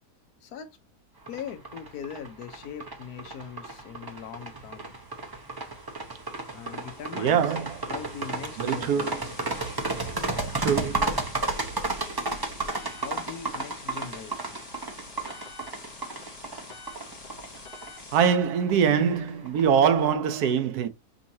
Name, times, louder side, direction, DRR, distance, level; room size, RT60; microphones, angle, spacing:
voice 1, 0.4-0.8 1.3-4.9 6.5-7.5 7.9-9.1 12.8-14.6, left 8 dB, 70° left, 1.2 m, -41 dB
sound 1, 1.3-18.2, left 4 dB, 35° left, 0.8 m, -48 dB
sound 2, 1.3-20.1, right 3 dB, 35° right, 0.3 m, -33 dB
voice 2, 7.1-7.9 8.6-9.3 10.6-11.2 18.1-20.9, right 7 dB, 75° right, 1.2 m, -24 dB
5.4 x 2.9 x 2.7 m
omnidirectional pair, 1.7 m